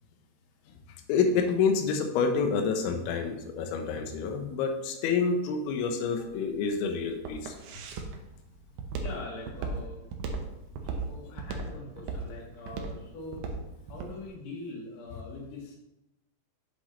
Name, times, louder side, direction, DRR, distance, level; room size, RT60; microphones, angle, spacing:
voice 1, 1.1-7.5, left 5 dB, 90° left, 5 dB, 3.1 m, -28 dB
Walk footsteps, 6.0-14.2, right 4 dB, 85° right, 2.0 m, -36 dB
voice 2, 7.4-7.8 8.9-10.0 10.9-13.5 13.9-15.8, left 2 dB, 55° left, -3 dB, 3.2 m, -43 dB
7.8 x 7.6 x 3.2 m, 0.92 s
omnidirectional pair, 5.2 m